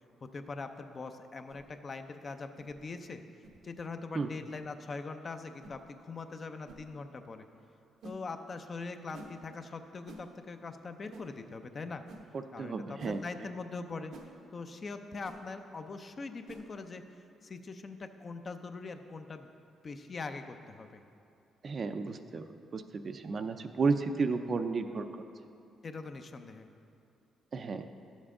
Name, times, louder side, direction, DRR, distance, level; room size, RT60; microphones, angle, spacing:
voice 1, 0.2-3.2 3.6-7.5 8.0-12.0 12.5-14.1 14.5-17.0 17.4-19.5 19.8-21.0 25.8-26.7, left 4 dB, 40° left, 7 dB, 0.5 m, -42 dB
sound 1, 1.5-1.7 2.6-2.7 3.4-3.6 4.5-4.7 5.6-5.8 6.7-6.8 8.0-8.2 9.1-9.3 10.1-10.3 11.1-11.3 12.1-12.2 13.0-13.2 14.1-14.3 15.2-15.4 16.5-16.7, right 2 dB, 80° right, 0.9 m, -49 dB
voice 2, 12.3-13.2 21.6-25.2 27.5-27.9, right 4 dB, 45° right, 8 dB, 0.4 m, -33 dB
11.0 x 7.2 x 3.7 m, 2.6 s
cardioid pair, 90°, 0 cm